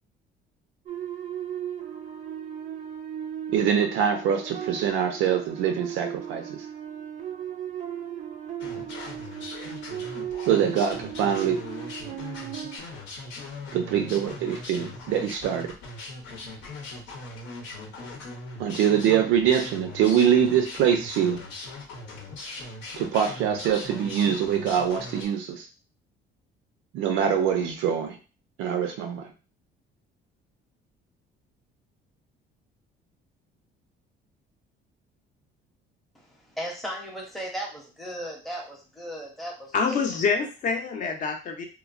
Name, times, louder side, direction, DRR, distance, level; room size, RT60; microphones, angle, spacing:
sound 1, 0.9-12.8, right 10 dB, 35° right, 0.4 m, -36 dB
voice 1, 3.5-6.6 10.5-11.6 13.7-15.7 18.6-21.4 23.0-25.7 26.9-28.2 28.6-29.3, right 8 dB, 90° right, 5 dB, 0.5 m, -24 dB
sound 2, 8.6-25.3, left 3 dB, 75° left, 0.7 m, -40 dB
voice 2, 36.1-40.0, equal, ahead, -2 dB, 0.6 m, -36 dB
voice 3, 39.7-41.6, left 5 dB, 40° left, 3 dB, 0.6 m, -26 dB
3.0 x 2.0 x 2.4 m, 0.33 s
cardioid pair, 155°, 20 cm